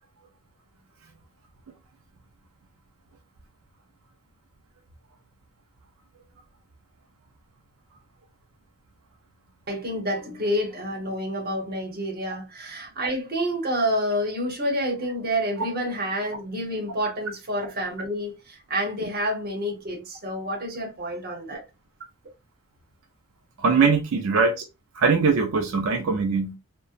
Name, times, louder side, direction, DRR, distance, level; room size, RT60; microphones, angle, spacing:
voice 1, 9.7-21.6, equal, 45° right, 0.9 m, -28 dB
voice 2, 23.6-24.6 24.9-26.6, right 5 dB, 90° right, 0.4 m, -21 dB
2.8 x 2.1 x 2.4 m
head